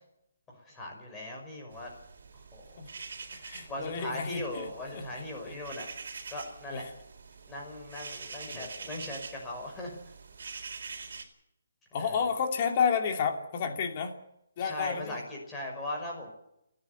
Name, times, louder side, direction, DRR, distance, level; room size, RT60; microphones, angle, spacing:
voice 1, 0.5-1.9 2.3-2.8 3.7-5.9 6.3-6.9 7.5-10.0 12.0-12.2 14.6-16.3, left 1 dB, 10° left, -1 dB, 5.7 m, -39 dB
sound 1, 1.7-11.2, right 5 dB, 60° right, 4.3 m, -45 dB
voice 2, 3.3-5.0 5.4-5.5 6.7-6.9 8.5-8.9 11.9-14.1 14.6-15.2, left 6 dB, 30° left, 4 dB, 2.8 m, -31 dB
29.5 x 10.5 x 9.5 m, 0.81 s
hypercardioid pair, 170°, 0 cm